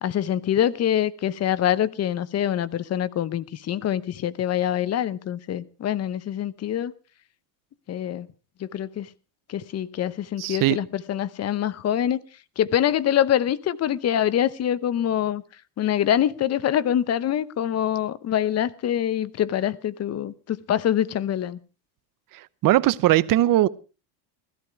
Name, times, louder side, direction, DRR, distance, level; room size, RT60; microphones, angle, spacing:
voice 1, 0.0-6.9 7.9-8.3 8.6-9.1 9.5-12.2 12.6-15.4 15.8-21.6, left 10 dB, 30° left, 0.8 m, -25 dB
voice 2, 10.4-10.8 22.6-23.7, right 15 dB, 40° right, 0.8 m, -19 dB
16.5 x 14.0 x 4.7 m
supercardioid pair, 130°, 50 cm